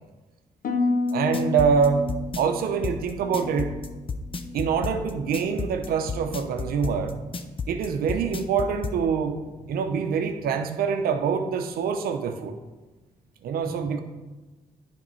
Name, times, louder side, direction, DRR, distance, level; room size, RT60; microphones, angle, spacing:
Harp, 0.6-4.7 5.0-5.6 6.1-6.4, left 3 dB, 65° left, 1.1 m, -31 dB
sound 1, 1.1-9.0, left 4 dB, 35° left, 0.6 m, -32 dB
voice 1, 1.1-2.1 2.4-3.8 4.5-7.2 7.7-9.4 9.7-12.6 13.4-14.0, right 6 dB, 85° right, 7 dB, 0.7 m, -25 dB
9.5 x 3.5 x 5.6 m, 1.2 s
cardioid pair, 70°, 15 cm